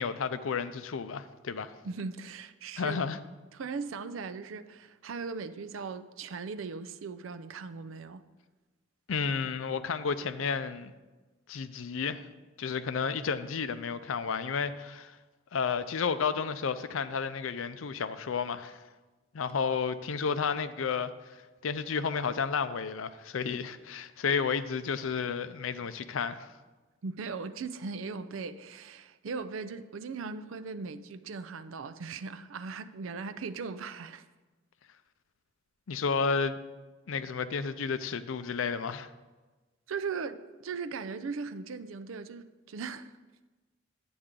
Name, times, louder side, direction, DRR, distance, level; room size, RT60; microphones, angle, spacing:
voice 1, 0.0-1.7 2.8-3.2 9.1-10.9 11.5-12.2 12.6-15.1 15.5-18.8 19.3-21.1 21.6-26.5 35.9-36.6 37.1-39.1, left 5 dB, 75° left, 0.5 m, -32 dB
voice 2, 1.8-3.0 3.5-8.2 27.0-34.2 39.9-43.2, right 4 dB, 75° right, 0.5 m, -38 dB
10.0 x 7.9 x 3.7 m
head